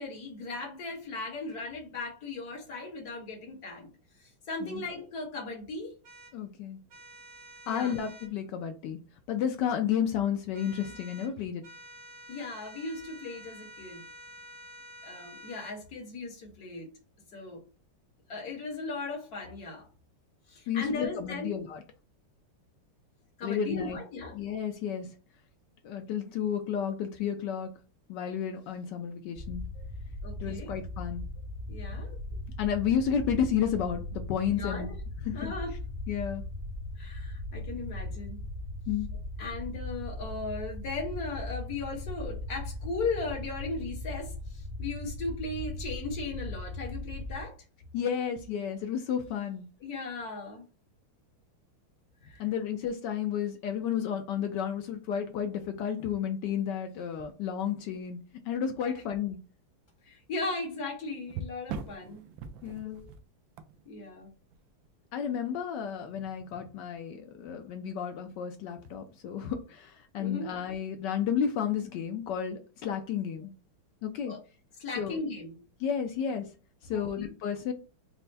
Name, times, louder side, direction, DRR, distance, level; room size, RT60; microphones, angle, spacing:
voice 1, 0.0-3.9 4.2-5.9 7.7-7.9 12.3-14.0 15.0-16.9 17.3-17.6 18.3-19.9 20.5-21.5 23.4-24.4 29.7-29.8 30.2-30.7 31.7-32.2 34.5-35.0 35.3-35.7 37.0-38.4 39.4-47.5 49.8-50.6 52.2-52.4 58.8-59.0 60.0-62.2 62.8-63.1 63.8-64.3 70.2-70.5 74.3-74.4 74.8-75.6 76.9-77.3, left 3 dB, 50° left, 2 dB, 1.5 m, -37 dB
sound 1, 6.0-6.3 6.9-8.3 10.5-11.3 11.6-15.8, equal, 60° right, 1.5 m, -49 dB
voice 2, 6.3-6.8 7.7-9.0 9.3-11.6 20.7-21.8 23.4-24.0 24.3-25.1 25.8-27.7 28.1-29.6 30.4-31.2 32.6-34.9 35.2-35.5 36.1-36.4 38.9-39.1 47.9-49.7 52.4-58.2 58.4-59.4 62.6-63.0 65.1-73.5 74.0-74.3 75.0-75.2 75.8-76.5 76.8-77.7, left 8 dB, 80° left, 5 dB, 1.0 m, -32 dB
sound 2, 29.3-47.4, left 1 dB, 40° right, 0.8 m, -39 dB
sound 3, 52.2-52.6 54.1-54.2 54.9-55.0 57.2-58.0 58.5-58.8 61.2-64.9 68.7-68.9, right 5 dB, 75° right, 1.1 m, -43 dB
4.5 x 2.1 x 3.9 m, 0.34 s
omnidirectional pair, 2.4 m